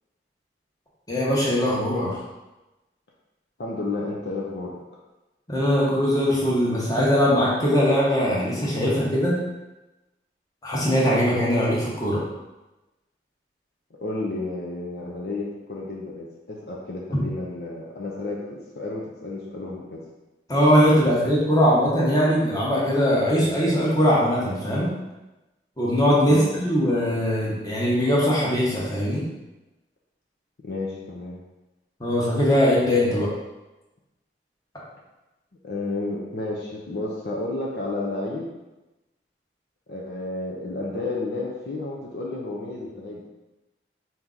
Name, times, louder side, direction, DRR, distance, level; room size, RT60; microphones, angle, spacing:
voice 1, 1.1-2.2 5.5-9.4 10.6-12.2 20.5-24.9 25.8-29.3 32.0-33.3, equal, 20° left, -6 dB, 1.0 m, -21 dB
voice 2, 3.6-4.8 14.0-20.0 26.3-26.5 30.6-31.4 35.6-38.5 39.9-43.3, left 2 dB, 60° left, -3 dB, 0.6 m, -31 dB
4.6 x 2.8 x 3.8 m, 1.1 s
head